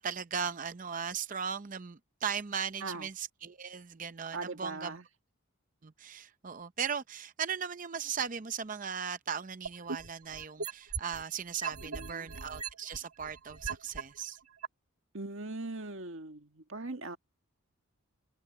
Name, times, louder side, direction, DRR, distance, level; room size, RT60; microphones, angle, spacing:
voice 1, 0.0-5.0 5.8-14.4, right 7 dB, 35° right, 0.6 m, -38 dB
voice 2, 4.3-5.1 11.8-12.3 15.1-17.2, right 3 dB, 65° right, 1.9 m, -40 dB
sound 1, 9.7-11.2 11.6-14.0 14.6-14.7, right 5 dB, 80° right, 2.0 m, -38 dB
open air
head